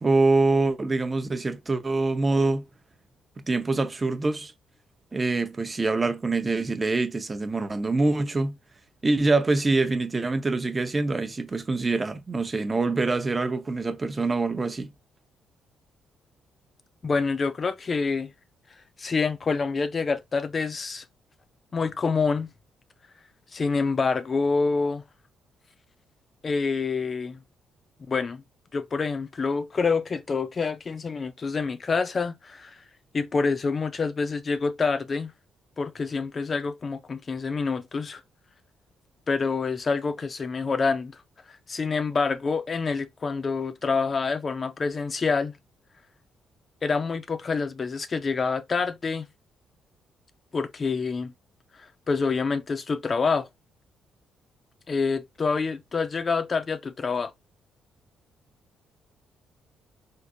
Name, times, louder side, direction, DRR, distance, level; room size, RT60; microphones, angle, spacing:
voice 1, 0.0-2.6 3.5-4.5 5.1-8.5 9.0-14.9, right 3 dB, 25° right, 0.6 m, -25 dB
voice 2, 17.0-18.3 19.0-21.0 21.7-22.5 23.5-25.0 26.4-27.4 28.1-28.4 28.7-32.8 33.1-35.3 35.8-38.2 39.3-41.2 41.5-45.5 46.8-49.3 50.5-51.3 51.7-53.5 54.9-57.3, left 4 dB, 35° left, 0.4 m, -27 dB
3.6 x 2.5 x 2.6 m
cardioid pair, 90°, 0 cm